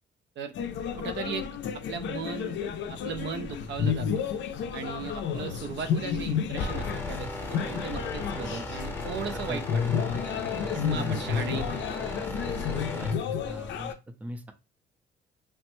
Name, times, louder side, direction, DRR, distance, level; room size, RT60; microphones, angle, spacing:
sound 1, 0.5-13.9, left 7 dB, 65° left, 0.4 m, -31 dB
voice 1, 1.0-1.5 1.9-4.2 4.7-9.8 10.7-11.9, right 6 dB, 65° right, 8 dB, 0.5 m, -37 dB
sound 2, 6.6-13.1, left 2 dB, 10° left, 0.8 m, -37 dB
voice 2, 9.3-10.0 10.9-11.3 13.0-13.1 13.4-13.9 14.2-14.5, equal, 5° right, 7 dB, 0.4 m, -39 dB
3.2 x 2.0 x 3.0 m, 0.28 s
cardioid pair, 90°, 20 cm